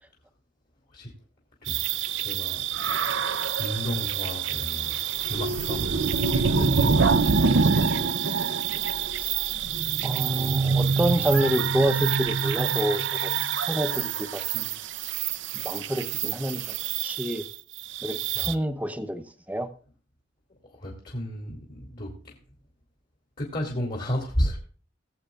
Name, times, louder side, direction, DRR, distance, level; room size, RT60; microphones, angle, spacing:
sound 1, 1.7-18.5, right 6 dB, 80° right, 0.6 m, -26 dB
voice 1, 2.2-2.7 3.6-5.0 5.2-8.0 9.0-9.1 9.6-9.7 18.3-18.5 20.6-22.4 23.4-24.6, equal, 45° left, 2.7 m, -33 dB
voice 2, 10.0-13.3 13.7-14.7 15.5-17.4 18.0-19.7, equal, 10° right, 0.8 m, -28 dB
20.0 x 7.9 x 2.4 m
head